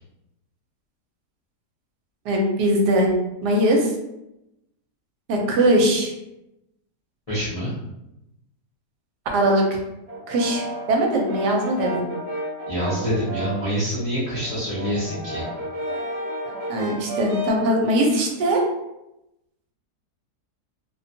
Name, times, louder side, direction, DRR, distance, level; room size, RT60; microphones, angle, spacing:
voice 1, 2.2-3.1 3.4-3.9 5.3-6.1 9.3-9.6 10.3-12.0 16.7-18.6, right 1 dB, 80° right, 1 dB, 1.2 m, -20 dB
voice 2, 7.3-7.7 12.7-15.4, equal, 45° left, -10 dB, 0.4 m, -26 dB
Brass instrument, 10.1-13.7 14.1-17.7, equal, 60° right, 0.4 m, -32 dB
2.7 x 2.2 x 2.6 m, 0.89 s
omnidirectional pair, 1.7 m